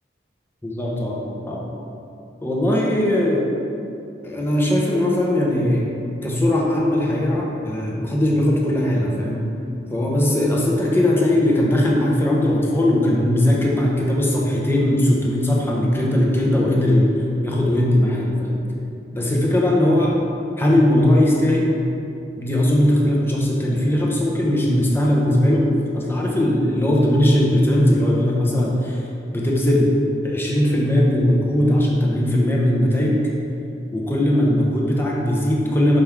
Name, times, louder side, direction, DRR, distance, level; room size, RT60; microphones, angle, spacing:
voice 1, 0.6-1.7 2.4-3.5 4.2-5.9 6.2-9.5 9.9-17.1 17.4-18.7 19.1-20.2 20.6-21.8 22.4-25.7 25.9-33.2 33.9-36.0, left 1 dB, 15° left, -3 dB, 0.8 m, -19 dB
5.9 x 5.2 x 3.5 m, 2.6 s
head